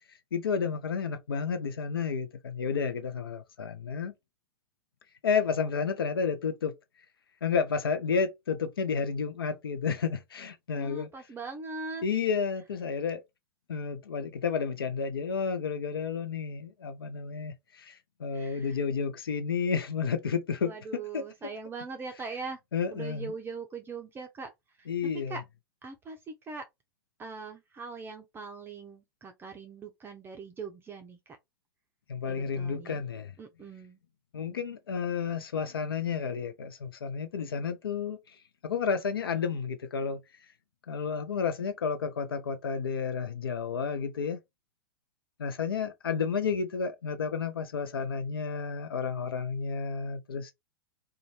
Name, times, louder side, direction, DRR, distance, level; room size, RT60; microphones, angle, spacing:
voice 1, 0.3-4.1 5.2-6.7 7.4-11.1 12.0-13.2 13.7-21.3 22.7-23.3 24.9-25.4 32.1-33.3 34.3-38.2 38.6-40.2 40.9-44.4 45.4-50.5, left 6 dB, 80° left, 0.6 m, -31 dB
voice 2, 10.7-12.0 18.3-18.8 20.6-22.6 22.9-24.5 24.8-24.9 25.3-25.4 25.8-26.6 27.2-31.4 32.3-33.0 33.4-34.0, right 4 dB, 20° right, 0.5 m, -41 dB
2.5 x 2.2 x 3.0 m
hypercardioid pair, 100°, 12 cm